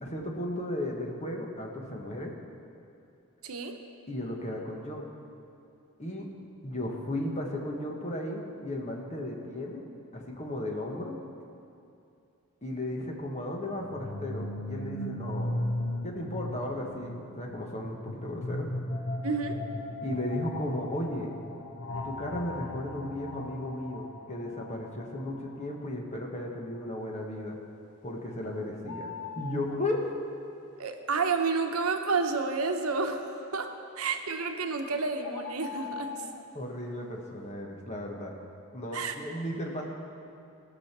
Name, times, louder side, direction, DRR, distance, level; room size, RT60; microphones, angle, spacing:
voice 1, 0.0-2.4 4.1-5.1 6.0-6.3 6.6-11.1 12.6-15.6 16.0-18.7 20.0-21.3 22.0-27.6 28.0-29.1 29.3-30.1 36.5-38.4 38.7-39.9, left 1 dB, 30° left, 0 dB, 1.4 m, -35 dB
voice 2, 3.4-3.8 19.2-19.6 30.8-36.2 38.9-39.1, right 4 dB, 80° right, 5 dB, 0.9 m, -30 dB
sound 1, 13.8-25.6, left 1 dB, 70° left, 0.8 m, -37 dB
sound 2, 28.8-29.8 34.4-34.5 35.2-36.5, left 7 dB, 85° left, 0.4 m, -40 dB
18.0 x 6.4 x 6.0 m, 2.6 s
head